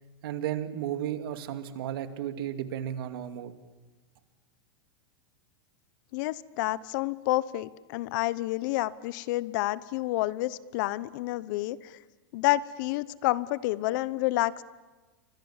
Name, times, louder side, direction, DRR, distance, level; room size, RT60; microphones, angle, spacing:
voice 1, 0.2-3.5, right 10 dB, 70° right, 8 dB, 2.5 m, -34 dB
voice 2, 6.1-12.0 12.3-14.6, left 17 dB, 55° left, 18 dB, 0.9 m, -29 dB
29.5 x 25.0 x 7.4 m, 1.3 s
supercardioid pair, 145°, 13 cm